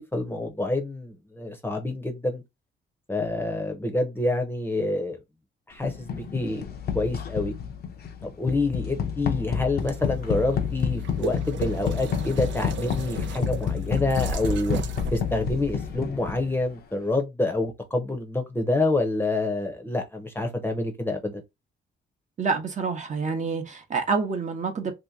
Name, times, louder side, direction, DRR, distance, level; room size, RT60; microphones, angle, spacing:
voice 1, 0.0-2.4 3.1-5.2 5.7-6.7 6.9-7.5 8.2-14.8 15.1-21.4, left 2 dB, 10° left, 0.8 m, -27 dB
sound 1, 5.8-16.7, left 7 dB, 50° left, 0.7 m, -30 dB
sound 2, 9.8-16.0, right 6 dB, 70° right, 0.6 m, -36 dB
voice 2, 22.4-24.9, right 5 dB, 40° right, 0.9 m, -27 dB
2.9 x 2.4 x 3.6 m
cardioid pair, 90°, 20 cm